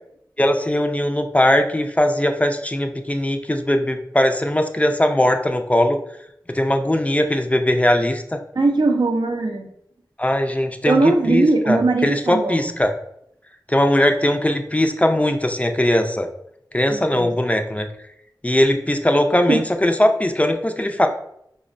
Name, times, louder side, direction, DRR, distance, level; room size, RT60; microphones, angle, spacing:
voice 1, 0.4-6.0 6.5-8.4 10.2-12.9 13.7-16.3 16.7-17.9 18.4-21.1, left 1 dB, 15° left, 5 dB, 0.3 m, -19 dB
voice 2, 8.5-9.7 10.9-12.7 16.9-17.3 19.5-19.6, right 3 dB, 70° right, 4 dB, 0.4 m, -20 dB
5.0 x 2.0 x 2.5 m, 0.75 s
wide cardioid pair, 50°, 8 cm